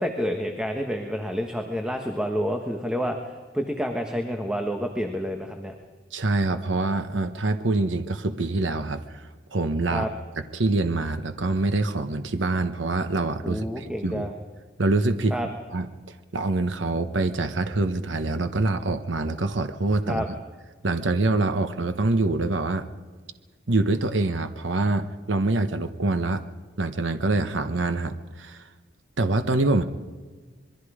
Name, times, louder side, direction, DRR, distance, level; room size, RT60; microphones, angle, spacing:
voice 1, 0.0-5.7 9.9-10.1 13.4-14.3 15.3-15.5 20.1-20.3, equal, 5° right, 3 dB, 1.3 m, -29 dB
voice 2, 6.1-10.1 10.5-14.3 14.8-15.4 15.7-15.9 16.3-20.2 20.8-22.9 23.7-26.4 26.8-28.6 29.2-29.8, right 2 dB, 85° right, 9 dB, 1.1 m, -25 dB
26.0 x 22.0 x 5.0 m, 1.4 s
head